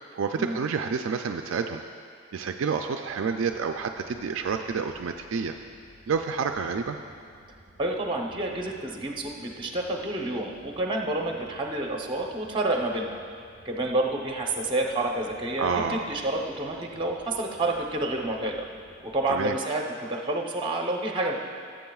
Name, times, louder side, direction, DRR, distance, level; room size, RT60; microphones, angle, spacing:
voice 1, 0.1-1.8 2.3-5.6 6.1-7.0 15.6-16.1 19.3-19.5, right 5 dB, 65° right, 5 dB, 0.3 m, -29 dB
sound 1, 3.1-19.6, right 1 dB, 40° left, 1.7 m, -55 dB
voice 2, 7.8-13.2 13.6-18.7 19.0-21.3, right 2 dB, 25° right, 0 dB, 0.8 m, -29 dB
17.0 x 7.6 x 2.3 m, 2.2 s
head